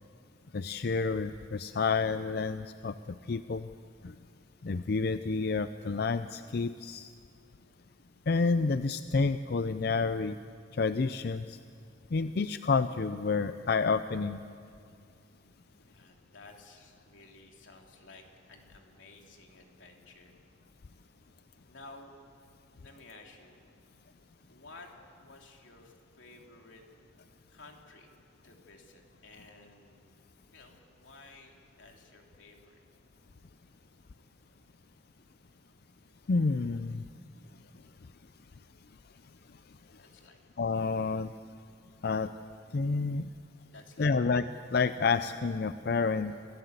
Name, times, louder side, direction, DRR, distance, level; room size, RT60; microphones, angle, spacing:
voice 1, 0.5-3.7 4.0-4.1 4.6-7.1 8.3-10.4 10.7-11.6 12.1-14.4 36.3-37.0 40.6-41.3 42.0-42.3 42.7-43.3 44.0-46.3, left 4 dB, 55° left, 11 dB, 0.5 m, -29 dB
voice 2, 15.8-20.3 21.7-22.1 22.7-23.6 24.5-24.9 25.2-26.8 27.5-28.1 28.4-30.1 30.5-32.8 39.9-40.4 43.7-44.1, left 3 dB, 90° left, 1 dB, 3.1 m, -54 dB
27.5 x 16.5 x 8.1 m, 2.3 s
head